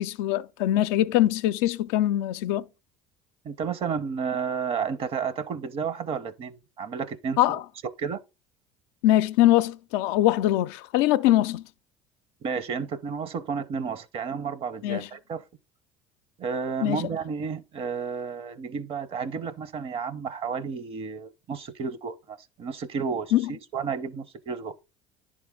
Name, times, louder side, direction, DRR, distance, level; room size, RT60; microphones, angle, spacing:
voice 1, 0.0-2.7 7.4-7.6 9.0-11.6 14.8-15.1 16.8-17.0 23.3-23.5, left 14 dB, 75° left, 0.4 m, -22 dB
voice 2, 3.4-7.6 8.0-8.2 12.4-15.4 16.4-24.7, right 6 dB, 45° right, 0.7 m, -32 dB
10.5 x 3.7 x 3.6 m
hypercardioid pair, 75°, 13 cm